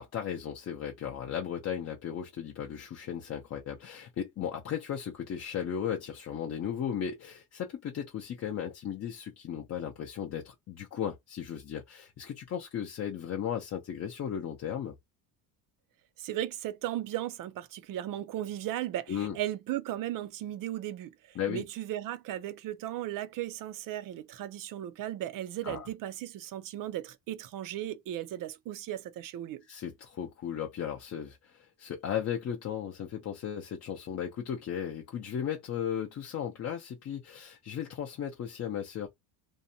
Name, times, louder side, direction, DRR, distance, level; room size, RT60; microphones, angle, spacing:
voice 1, 0.0-14.9 19.1-19.4 21.3-21.6 25.6-25.9 29.7-39.1, left 9 dB, 35° left, 0.5 m, -36 dB
voice 2, 16.2-29.6, right 13 dB, 50° right, 0.4 m, -36 dB
2.6 x 2.1 x 2.6 m
cardioid pair, 130°, 45 cm